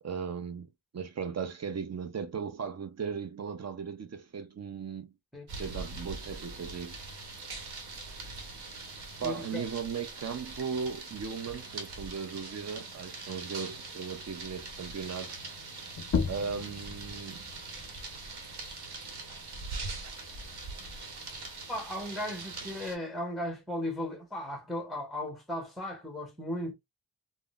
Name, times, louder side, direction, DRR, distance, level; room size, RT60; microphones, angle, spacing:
voice 1, 0.0-5.1 5.6-7.0 9.2-15.3 16.3-17.5 20.0-20.1, right 6 dB, 40° right, 0.5 m, -37 dB
sound 1, 5.5-22.9, right 3 dB, 60° right, 1.0 m, -42 dB
voice 2, 9.2-9.6 21.7-26.7, left 1 dB, ahead, 0.8 m, -36 dB
sound 2, 15.9-21.2, left 6 dB, 40° left, 0.5 m, -38 dB
3.6 x 2.0 x 2.3 m
cardioid pair, 85°, 43 cm